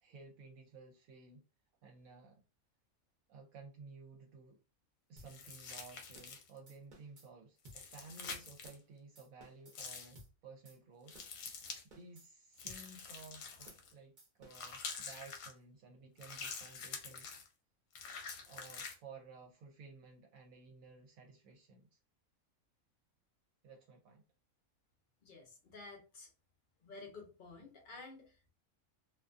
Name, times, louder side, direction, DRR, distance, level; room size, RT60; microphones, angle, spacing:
voice 1, 0.0-1.4 1.8-2.4 3.3-4.6 5.1-11.2 11.9-17.4 18.5-22.0 23.6-24.2, right 4 dB, 75° right, 0 dB, 1.0 m, -55 dB
sound 1, 5.2-5.3 5.7-5.8 6.2-6.4 6.7-7.3 7.7-7.8 8.2-8.3 8.6-8.9 9.2-9.8 10.2-10.3 10.7-10.8 11.1-11.4 11.7-12.3 12.7-12.8 13.2-13.3 13.7-13.9 14.2-14.8, right 1 dB, 40° right, 0.7 m, -58 dB
sound 2, 5.3-6.6 7.6-8.8 9.7-10.2 11.1-11.8 12.6-13.9 14.5-15.5 16.2-17.5 17.9-19.0, left 5 dB, 75° left, 1.0 m, -46 dB
voice 2, 25.2-26.3 26.8-28.5, left 3 dB, 55° left, 2 dB, 0.5 m, -52 dB
2.5 x 2.2 x 2.4 m, 0.32 s
omnidirectional pair, 1.5 m